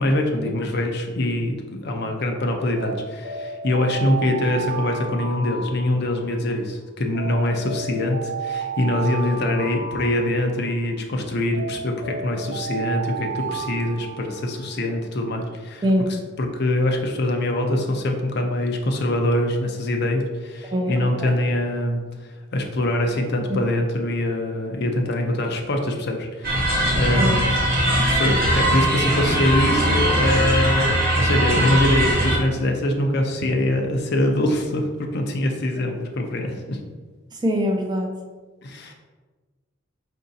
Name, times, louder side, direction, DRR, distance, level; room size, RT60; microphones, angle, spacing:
voice 1, 0.0-15.8 16.1-22.0 22.5-27.4 27.9-36.8 38.6-38.9, left 1 dB, 55° left, 3 dB, 0.6 m, -24 dB
Alarm, 2.7-6.5 7.1-10.8 11.5-14.7, right 5 dB, 85° right, 0.8 m, -32 dB
voice 2, 15.8-16.1 20.7-21.3 23.5-23.6 27.2-27.4 37.4-38.1, equal, 20° right, 2 dB, 0.4 m, -23 dB
sound 1, 26.4-32.4, right 1 dB, 45° right, 1.1 m, -20 dB
4.8 x 2.6 x 4.0 m, 1.3 s
head